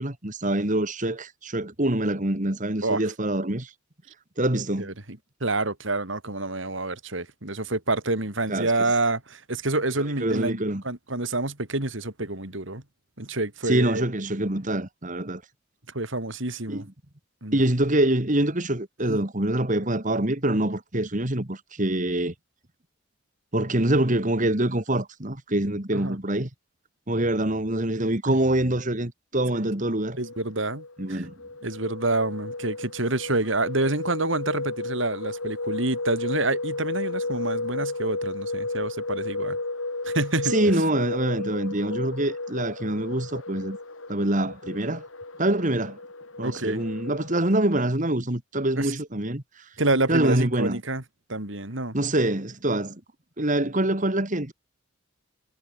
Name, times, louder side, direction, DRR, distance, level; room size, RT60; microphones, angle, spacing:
voice 1, 0.0-3.7 4.4-4.9 8.5-8.7 10.2-10.8 13.7-15.4 16.7-16.8 17.5-22.3 23.5-26.5 27.1-30.2 31.0-31.3 40.5-43.8 44.1-45.0 45.4-46.0 46.4-49.4 50.1-50.8 51.9-53.0 53.4-54.5, right 1 dB, 40° right, 2.4 m, -25 dB
voice 2, 4.8-10.6 10.8-12.8 13.2-14.0 15.9-16.9 17.4-17.6 19.1-19.2 25.9-26.2 28.3-28.4 29.5-29.7 30.2-31.2 31.6-39.6 40.0-40.5 46.4-46.8 48.8-48.9 49.8-51.0 51.3-52.0, right 2 dB, 65° right, 3.6 m, -28 dB
sound 1, 30.0-47.8, left 2 dB, 75° left, 4.4 m, -33 dB
head